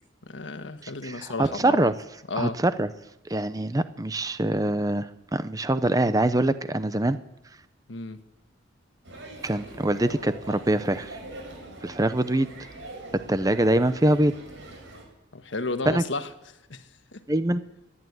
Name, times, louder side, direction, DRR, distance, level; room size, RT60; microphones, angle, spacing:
voice 1, 0.2-1.9 2.3-2.6 7.9-8.2 15.3-16.3 16.7-16.8 17.1-17.2, left 3 dB, 75° left, 1.4 m, -32 dB
voice 2, 0.8-1.9 2.4-2.9 3.3-7.2 9.4-11.2 11.8-12.5 13.1-14.3 15.9-16.0 17.3-17.6, right 1 dB, 20° right, 0.7 m, -24 dB
sound 1, 9.0-15.0, right 2 dB, 90° right, 6.0 m, -42 dB
26.0 x 11.5 x 9.5 m
head